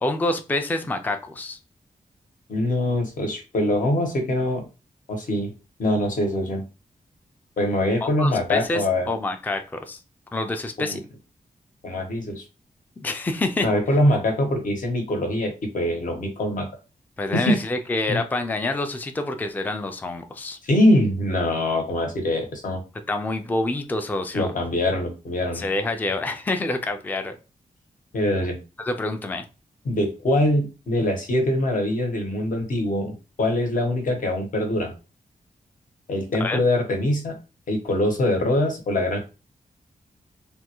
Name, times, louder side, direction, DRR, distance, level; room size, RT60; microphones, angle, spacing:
voice 1, 0.0-1.6 8.0-10.0 10.3-11.0 13.0-13.7 17.2-20.6 23.1-24.5 25.5-27.4 28.8-29.4 36.4-36.6, left 2 dB, 10° left, 6 dB, 0.3 m, -27 dB
voice 2, 2.5-4.7 5.1-5.5 5.8-6.6 7.6-9.1 10.8-11.0 11.8-12.4 13.6-16.7 17.3-17.6 18.1-18.2 20.6-22.8 24.3-25.6 28.1-28.6 29.8-34.9 36.1-37.3 37.7-39.2, left 1 dB, 70° left, 3 dB, 1.0 m, -23 dB
3.4 x 2.3 x 2.9 m, 0.31 s
wide cardioid pair, 160°, 14 cm